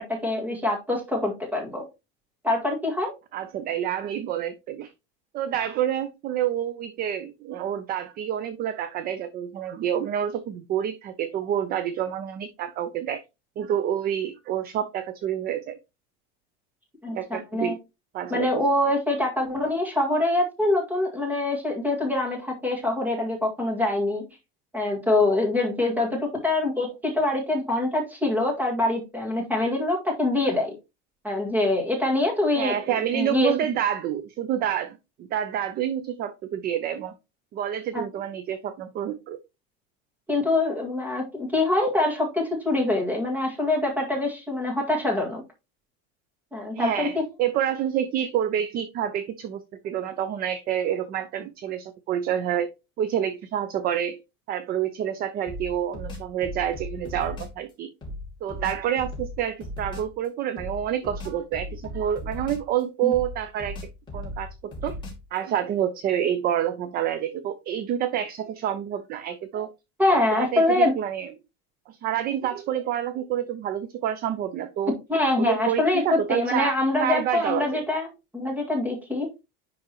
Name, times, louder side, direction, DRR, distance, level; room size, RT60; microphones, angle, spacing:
voice 1, 0.1-1.8 2.4-3.1 17.0-17.7 18.3-24.2 24.7-30.7 31.2-32.7 33.1-33.5 37.9-38.0 40.3-45.4 46.5-47.2 63.0-63.1 70.0-70.9 75.1-78.1 78.3-79.4, left 2 dB, 5° right, 1 dB, 1.9 m, -24 dB
voice 2, 3.3-4.9 5.3-13.2 13.6-15.8 17.1-17.8 18.1-18.6 32.5-37.1 37.5-39.4 46.7-52.7 53.0-54.2 54.5-57.9 58.4-63.8 64.1-65.0 65.3-69.7 70.1-71.3 71.9-74.9 75.4-77.8, right 10 dB, 30° right, 11 dB, 0.5 m, -28 dB
sound 1, 55.5-57.6 58.0-60.1 60.6-62.8 63.1-65.4, left 1 dB, 15° left, 3.0 m, -37 dB
10.0 x 3.9 x 2.9 m, 0.25 s
cardioid pair, 165°, 31 cm